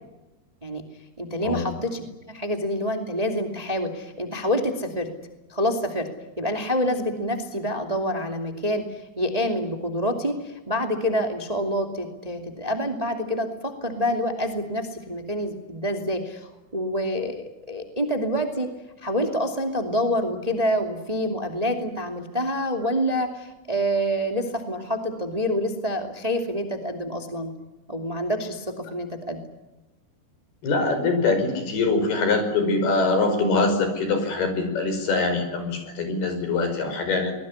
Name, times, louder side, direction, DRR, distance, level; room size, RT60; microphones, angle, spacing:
voice 1, 1.2-5.1 5.5-6.1 6.4-18.7 19.0-27.5 27.9-29.4, equal, 10° right, 5 dB, 2.0 m, -27 dB
voice 2, 30.6-37.3, left 3 dB, 75° left, 8 dB, 7.1 m, -23 dB
24.0 x 21.0 x 9.8 m, 1.0 s
omnidirectional pair, 4.6 m